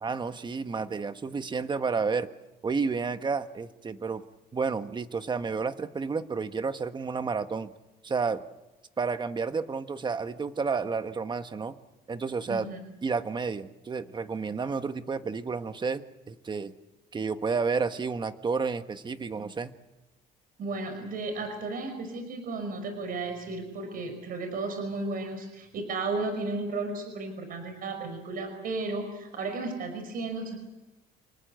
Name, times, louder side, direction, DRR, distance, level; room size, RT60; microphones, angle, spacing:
voice 1, 0.0-2.3 2.6-4.2 4.5-7.7 8.0-8.4 9.0-11.7 12.1-12.7 13.0-16.7 17.1-19.7, right 5 dB, 25° right, 10 dB, 1.4 m, -31 dB
voice 2, 12.5-12.8 20.6-30.6, right 3 dB, 55° right, 7 dB, 5.5 m, -34 dB
28.5 x 19.5 x 8.1 m, 1.0 s
cardioid pair, 110°, 17 cm